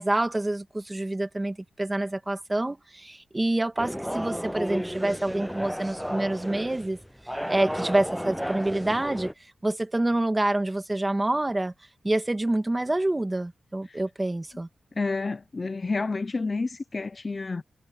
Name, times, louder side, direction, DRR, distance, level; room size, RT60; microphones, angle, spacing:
voice 1, 0.0-7.0 7.5-9.3 9.6-11.7 12.0-14.7, right 1 dB, 15° right, 1.9 m, -27 dB
sound 1, 3.8-9.3, equal, ahead, 0.6 m, -33 dB
voice 2, 14.9-17.6, left 3 dB, 35° left, 0.7 m, -29 dB
wide cardioid pair, 115°, 0 cm